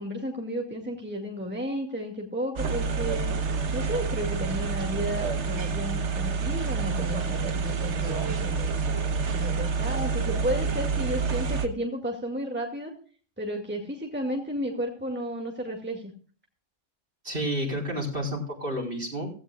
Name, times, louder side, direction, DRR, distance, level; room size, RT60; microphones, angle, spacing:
voice 1, 0.0-3.3 3.7-8.8 9.3-12.9 13.4-16.1, equal, 10° right, 1 dB, 2.2 m, -33 dB
sound 1, 2.6-11.7, right 5 dB, 65° right, 1.4 m, -28 dB
voice 2, 17.2-19.3, equal, 45° right, 0 dB, 4.1 m, -30 dB
16.0 x 15.5 x 2.4 m, 0.41 s
omnidirectional pair, 1.3 m